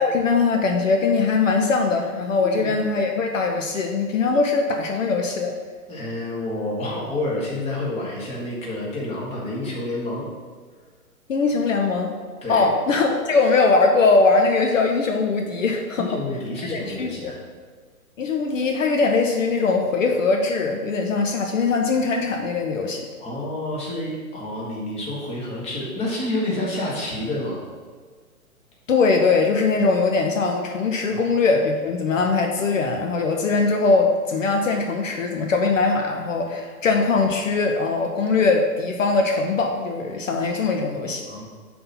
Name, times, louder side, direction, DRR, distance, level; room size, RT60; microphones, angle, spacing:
voice 1, 0.0-5.6 11.3-12.1 12.5-16.1 16.7-17.4 18.2-23.1 28.9-41.3, left 4 dB, 60° left, 3 dB, 0.8 m, -21 dB
voice 2, 5.9-10.2 12.4-12.7 16.0-17.3 23.2-27.6 31.1-31.2 41.3-41.5, left 1 dB, 15° left, -4 dB, 1.5 m, -29 dB
5.4 x 4.3 x 5.6 m, 1.5 s
figure-of-eight pair, 130°, 44 cm